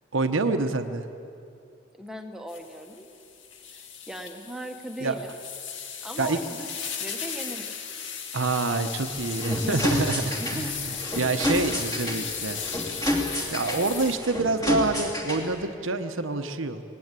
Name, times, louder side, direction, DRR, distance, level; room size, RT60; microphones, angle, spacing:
voice 1, 0.1-1.0 5.0-5.2 6.2-6.4 8.3-12.6 13.5-16.8, right 3 dB, 90° right, 8 dB, 1.0 m, -27 dB
voice 2, 2.0-3.1 3.7-5.4 6.0-7.8 9.5-9.8 10.2-10.8 11.3-11.4, equal, 5° right, 3 dB, 1.3 m, -38 dB
sound 1, 2.5-14.2, left 7 dB, 70° left, 1.8 m, -36 dB
sound 2, 9.0-15.6, left 1 dB, 20° left, 2.5 m, -30 dB
19.0 x 18.5 x 8.3 m, 2.5 s
head